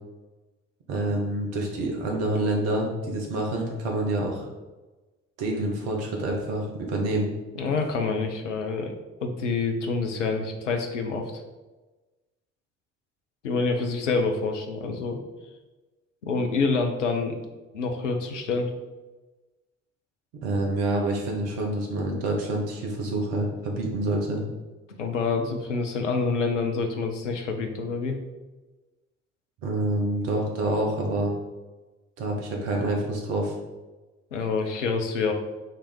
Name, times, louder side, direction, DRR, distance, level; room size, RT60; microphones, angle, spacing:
voice 1, 0.9-4.5 5.4-7.3 20.4-24.4 29.6-31.3 32.2-33.5, right 1 dB, 70° right, 0 dB, 1.3 m, -27 dB
voice 2, 7.6-8.9 9.2-11.4 13.4-15.2 16.2-17.4 17.7-18.7 25.0-28.2 34.3-35.3, left 4 dB, 85° left, 4 dB, 0.6 m, -27 dB
5.6 x 3.3 x 5.2 m, 1.2 s
figure-of-eight pair, 40°, 36 cm